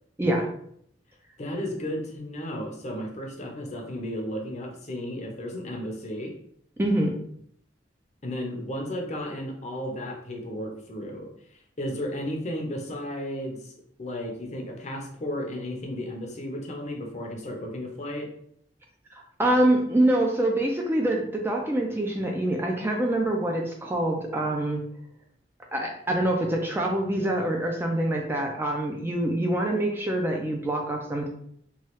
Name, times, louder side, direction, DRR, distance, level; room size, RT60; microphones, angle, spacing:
voice 1, 1.4-6.3 8.2-11.3 11.8-13.7 14.0-18.3, equal, 40° left, 1 dB, 0.6 m, -34 dB
voice 2, 6.8-7.1 19.1-24.8 25.7-31.3, right 1 dB, 15° right, 1 dB, 0.3 m, -25 dB
3.1 x 2.3 x 2.9 m, 0.67 s
head